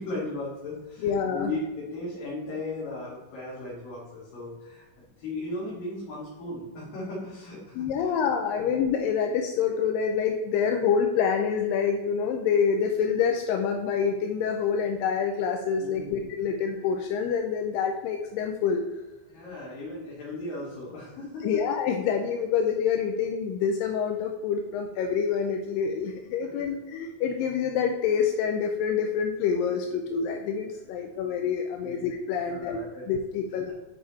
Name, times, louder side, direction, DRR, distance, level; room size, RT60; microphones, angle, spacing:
voice 1, 0.0-8.1 8.5-8.7 15.8-16.3 19.3-21.6 31.8-32.0 32.4-33.1, left 2 dB, 65° left, -8 dB, 3.7 m, -37 dB
voice 2, 1.0-1.5 7.8-18.9 21.4-32.8 33.1-33.7, left 6 dB, 80° left, 4 dB, 2.2 m, -27 dB
10.0 x 4.9 x 4.1 m, 1.2 s
omnidirectional pair, 4.3 m